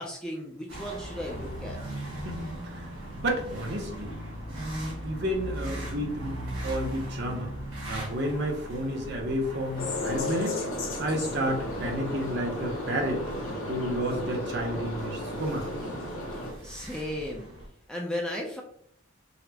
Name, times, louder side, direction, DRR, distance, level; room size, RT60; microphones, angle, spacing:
voice 1, 0.0-1.8 16.6-17.5 17.9-18.6, left 1 dB, 5° left, -1 dB, 0.3 m, -35 dB
sound 1, 0.7-17.7, equal, 90° right, 1.4 m, -39 dB
voice 2, 2.2-4.1 4.5-6.4 6.6-7.5 7.9-10.6 11.0-13.3 13.7-15.7, equal, 55° right, 1 dB, 0.6 m, -31 dB
sound 2, 9.8-16.5, left 1 dB, 85° left, 0.8 m, -34 dB
4.0 x 2.0 x 2.8 m, 0.66 s
head